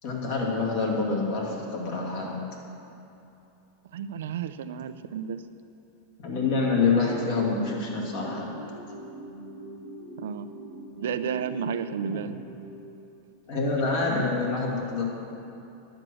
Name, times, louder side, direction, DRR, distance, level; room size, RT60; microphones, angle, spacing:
voice 1, 0.0-2.4 6.2-8.6 12.0-12.3 13.5-15.0, left 4 dB, 60° left, -2 dB, 2.5 m, -27 dB
voice 2, 3.9-5.4 10.2-10.5 11.0-12.4, right 7 dB, 80° right, 11 dB, 0.5 m, -32 dB
sound 1, 6.2-13.4, right 1 dB, 90° left, 2.6 m, -43 dB
10.5 x 7.7 x 6.2 m, 2.8 s
supercardioid pair, 135°, 0 cm